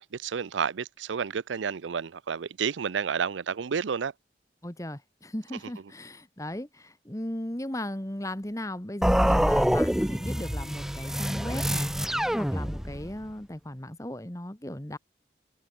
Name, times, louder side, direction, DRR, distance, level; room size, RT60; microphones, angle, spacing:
voice 1, 0.0-4.1, right 6 dB, 85° right, 0.5 m, -30 dB
voice 2, 4.6-15.0, left 1 dB, 15° left, 1.5 m, -37 dB
sound 1, 9.0-13.1, equal, ahead, 0.9 m, -26 dB
head